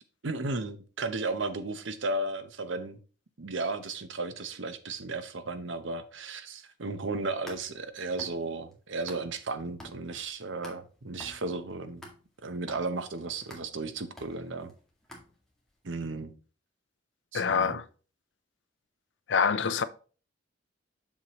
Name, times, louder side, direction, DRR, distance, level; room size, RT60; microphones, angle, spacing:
voice 1, 0.2-3.0 3.4-12.0 12.4-14.7 15.8-16.3 17.3-17.8, right 3 dB, 80° right, 0.8 m, -34 dB
sound 1, 7.1-9.5 9.8-15.7, left 1 dB, 5° left, 1.9 m, -50 dB
voice 2, 17.3-17.8 19.3-19.8, left 6 dB, 70° left, 0.5 m, -25 dB
7.3 x 6.5 x 3.0 m
head